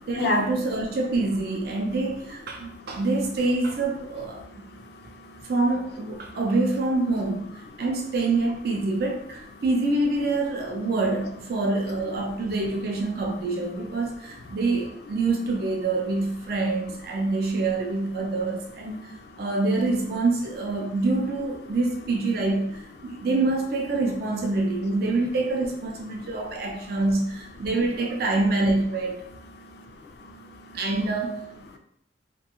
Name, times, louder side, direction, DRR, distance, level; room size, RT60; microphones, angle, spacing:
voice 1, 0.1-4.4 5.4-29.2 30.7-31.5, right 2 dB, 55° right, 1 dB, 0.4 m, -26 dB
voice 2, 4.9-5.4 23.1-23.2 29.7-30.8, left 4 dB, 60° left, 5 dB, 0.3 m, -32 dB
2.5 x 2.2 x 2.8 m, 0.72 s
head